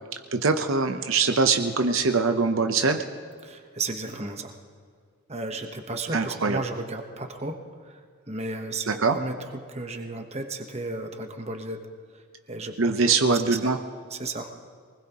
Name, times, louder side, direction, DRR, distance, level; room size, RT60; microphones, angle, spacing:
voice 1, 0.3-3.0 6.1-6.6 8.9-9.2 12.8-13.8, right 4 dB, 60° right, 6 dB, 0.8 m, -23 dB
voice 2, 3.4-4.5 5.3-11.8 12.1-12.2 12.5-13.8 14.1-14.5, right 2 dB, 30° right, 4 dB, 1.1 m, -34 dB
24.0 x 20.0 x 3.0 m, 2.1 s
head